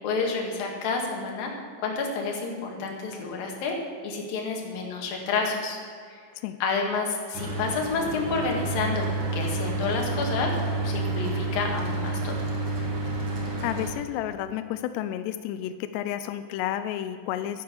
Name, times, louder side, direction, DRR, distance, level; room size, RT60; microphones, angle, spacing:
voice 1, 0.0-3.8 4.0-5.8 6.1-6.2 6.6-10.6 10.8-12.3, left 4 dB, 55° left, 1 dB, 3.2 m, -29 dB
Mechanical fan, 7.3-13.9, right 2 dB, 60° right, 1.3 m, -29 dB
voice 2, 13.6-17.6, left 11 dB, 85° left, 10 dB, 2.4 m, -31 dB
12.5 x 10.0 x 6.9 m, 2.2 s
omnidirectional pair, 5.5 m